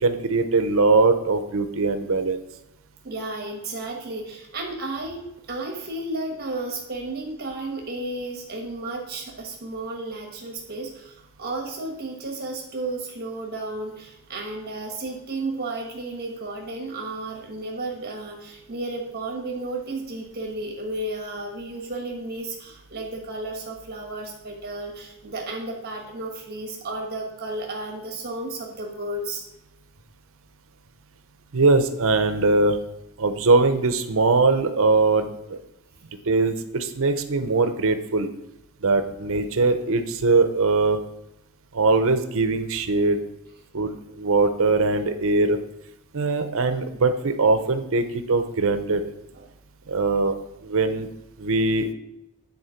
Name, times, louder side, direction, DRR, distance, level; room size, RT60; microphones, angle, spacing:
voice 1, 0.0-2.4 31.5-32.8 33.2-35.6 36.3-38.3 38.8-41.0 41.7-43.2 43.7-45.6 46.1-49.0 49.9-50.4 50.6-51.1 51.4-51.9, right 3 dB, 65° right, 9 dB, 0.8 m, -21 dB
voice 2, 3.0-29.4 49.3-49.5, right 2 dB, 45° right, 1 dB, 1.3 m, -33 dB
9.6 x 4.4 x 5.8 m, 0.87 s
head